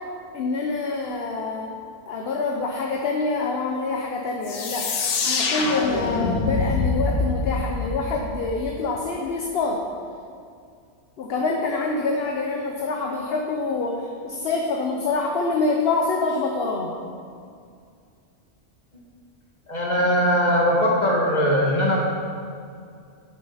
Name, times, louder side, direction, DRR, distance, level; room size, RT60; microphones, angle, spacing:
voice 1, 0.3-1.7 2.1-4.9 5.2-9.8 11.2-16.9, left 3 dB, 65° left, 1 dB, 0.9 m, -26 dB
sound 1, 4.4-9.0, left 4 dB, 90° left, 1.1 m, -25 dB
voice 2, 19.7-22.0, equal, 40° left, -3 dB, 1.7 m, -20 dB
7.4 x 6.4 x 5.5 m, 2.3 s
omnidirectional pair, 1.2 m